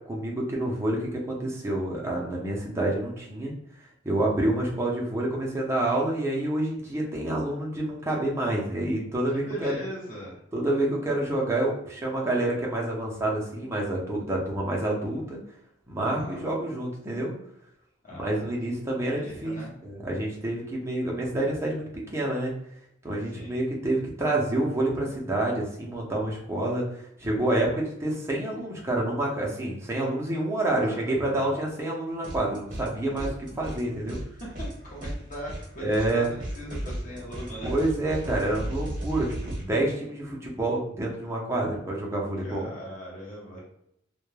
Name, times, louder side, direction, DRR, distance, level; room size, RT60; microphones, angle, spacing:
voice 1, 0.1-3.5 4.0-9.8 10.5-15.4 15.9-17.3 18.1-22.5 23.0-34.2 35.8-36.3 37.6-42.7, right 1 dB, 15° right, -3 dB, 0.5 m, -28 dB
voice 2, 9.3-10.4 16.0-16.4 18.0-18.5 19.1-19.7 23.3-23.6 30.7-31.5 33.1-33.8 34.4-37.7 42.4-43.6, equal, 45° left, -4 dB, 0.6 m, -40 dB
sound 1, 32.2-32.9 33.2-39.6, right 1 dB, 40° right, 0.8 m, -36 dB
2.1 x 2.1 x 3.1 m, 0.75 s
head